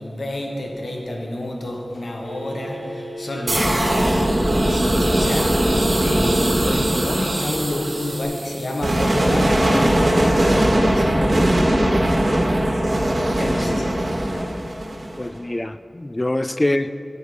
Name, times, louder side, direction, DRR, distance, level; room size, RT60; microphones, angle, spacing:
voice 1, 0.0-11.6 13.4-14.0, left 1 dB, 80° left, 1 dB, 1.1 m, -29 dB
Telephone, 2.2-8.2, equal, 25° right, 1.4 m, -35 dB
sound 1, 3.5-15.3, right 1 dB, 75° right, 1.6 m, -20 dB
voice 2, 15.2-16.9, left 1 dB, 30° left, 13 dB, 0.3 m, -24 dB
8.1 x 8.0 x 5.1 m, 2.6 s
wide cardioid pair, 60°, 0 cm